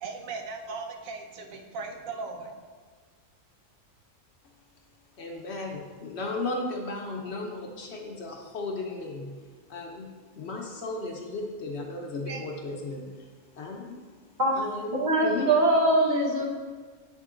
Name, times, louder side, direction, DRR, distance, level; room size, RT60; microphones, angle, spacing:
voice 1, 0.0-2.5 12.3-12.4 16.4-16.5, right 4 dB, 80° right, 3 dB, 1.1 m, -38 dB
voice 2, 5.2-9.3 9.7-10.1 10.4-13.3 13.6-14.0 14.6-15.5, left 2 dB, 60° left, 1 dB, 0.9 m, -35 dB
voice 3, 14.9-16.5, right 1 dB, 40° right, -2 dB, 0.8 m, -22 dB
7.7 x 3.7 x 3.7 m, 1.5 s
omnidirectional pair, 1.4 m